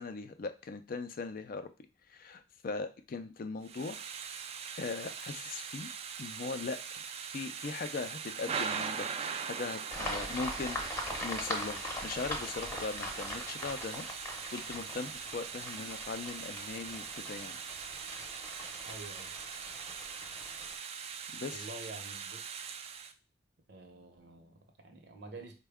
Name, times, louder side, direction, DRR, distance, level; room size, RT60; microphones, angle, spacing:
voice 1, 0.0-1.7 2.1-4.0 4.8-5.9 6.2-6.8 7.3-9.1 9.5-17.6 21.3-21.7, left 4 dB, 50° left, 9 dB, 0.4 m, -39 dB
Thunder / Rain, 3.6-23.1, right 6 dB, 35° right, 0.3 m, -41 dB
sound 1, 9.9-20.7, left 1 dB, 15° left, 0.7 m, -42 dB
voice 2, 18.8-19.3 21.5-22.7 23.7-25.5, right 2 dB, 65° right, 5 dB, 0.8 m, -48 dB
4.3 x 2.2 x 3.4 m, 0.32 s
head